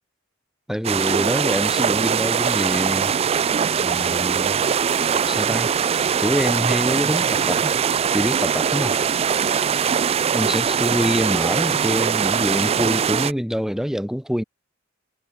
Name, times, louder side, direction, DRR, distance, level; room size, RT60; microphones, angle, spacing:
voice 1, 0.7-3.1 3.8-4.6 5.3-5.7 6.2-7.8 8.1-9.0 10.3-14.4, equal, ahead, 1.3 m, -25 dB
sound 1, 0.8-13.3, right 7 dB, 30° right, 0.3 m, -21 dB
head